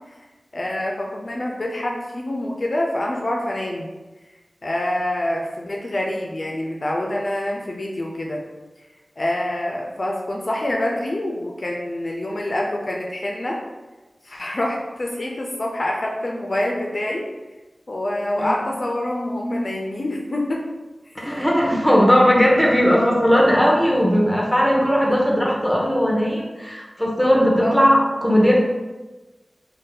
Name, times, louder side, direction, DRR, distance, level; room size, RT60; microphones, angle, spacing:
voice 1, 0.5-3.9 4.6-8.4 9.2-13.6 14.2-17.3 17.9-20.7 21.1-21.2 25.1-25.2 27.6-27.8, left 1 dB, 55° left, -1 dB, 0.4 m, -26 dB
voice 2, 21.1-28.6, equal, 5° left, -2 dB, 0.7 m, -18 dB
2.6 x 2.1 x 3.8 m, 1.2 s
wide cardioid pair, 50°, 0 cm